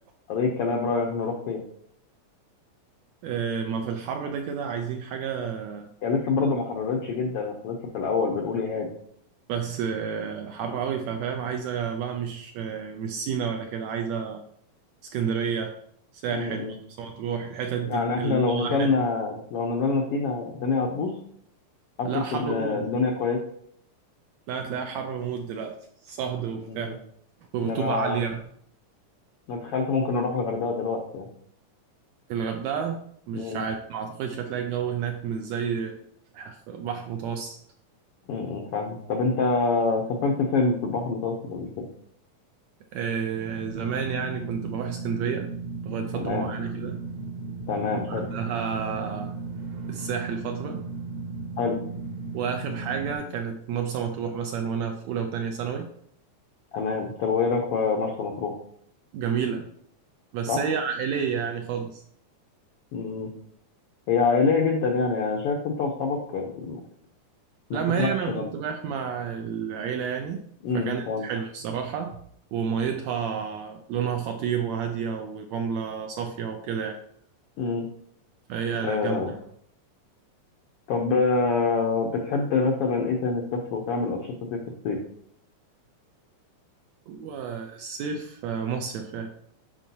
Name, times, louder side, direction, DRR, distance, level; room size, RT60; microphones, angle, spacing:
voice 1, 0.3-1.6 6.0-8.9 16.3-16.7 17.9-21.2 22.0-23.4 26.7-27.0 27.6-28.2 29.5-31.3 33.3-33.6 38.3-41.8 46.1-46.5 47.7-48.3 51.6-51.8 56.7-58.6 60.5-60.6 62.9-63.3 64.1-66.8 67.7-68.4 70.6-71.2 77.6-77.8 78.8-79.3 80.9-84.6 84.8-85.0, left 4 dB, 80° left, 1 dB, 1.3 m, -26 dB
voice 2, 3.2-5.9 9.5-14.4 15.1-15.7 16.1-16.7 17.0-18.9 22.0-22.9 24.5-25.8 26.0-27.0 27.5-28.4 32.3-33.0 33.3-36.0 36.3-37.6 42.9-45.5 45.8-47.0 47.9-49.3 49.9-50.9 52.3-55.9 59.1-59.7 60.3-62.0 67.7-70.4 70.7-72.2 72.5-77.0 78.5-79.4 87.1-89.3, right 7 dB, 80° right, 4 dB, 1.6 m, -30 dB
sound 1, 43.4-53.2, right 3 dB, 65° right, 1.7 m, -35 dB
10.0 x 4.5 x 2.7 m, 0.67 s
omnidirectional pair, 3.5 m